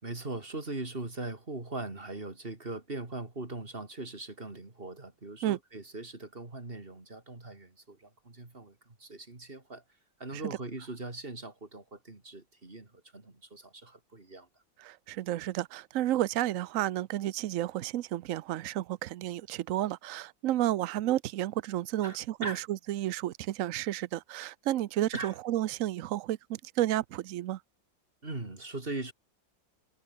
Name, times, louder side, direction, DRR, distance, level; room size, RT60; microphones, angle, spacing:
voice 1, 0.0-9.8 10.2-14.5 22.0-22.6 25.1-25.4 28.2-29.1, right 2 dB, 30° right, 3.6 m, -40 dB
voice 2, 14.8-27.6, right 13 dB, 80° right, 0.7 m, -31 dB
omnidirectional pair, 2.0 m